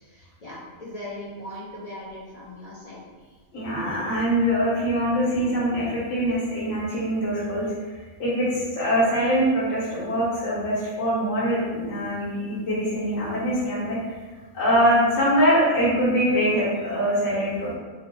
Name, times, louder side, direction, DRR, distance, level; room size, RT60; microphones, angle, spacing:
voice 1, 0.1-3.0, left 1 dB, 50° left, -7 dB, 0.4 m, -39 dB
voice 2, 3.5-7.7 8.2-14.2 14.5-17.7, equal, 65° left, -7 dB, 1.2 m, -23 dB
2.9 x 2.0 x 4.1 m, 1.4 s
omnidirectional pair, 1.4 m